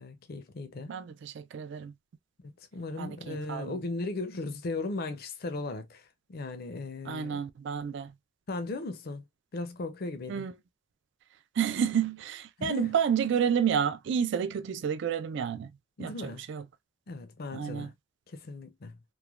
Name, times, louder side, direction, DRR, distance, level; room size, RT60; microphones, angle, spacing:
voice 1, 0.0-0.9 2.7-7.4 8.5-9.3 9.5-10.5 12.6-12.9 16.0-16.4 17.1-17.9 18.3-19.0, left 3 dB, 50° left, 0.5 m, -37 dB
voice 2, 0.9-1.9 3.0-3.8 7.1-8.1 10.3-10.5 11.6-15.7 16.0-16.6 17.5-17.9, right 7 dB, 60° right, 0.3 m, -30 dB
3.1 x 2.2 x 2.3 m
head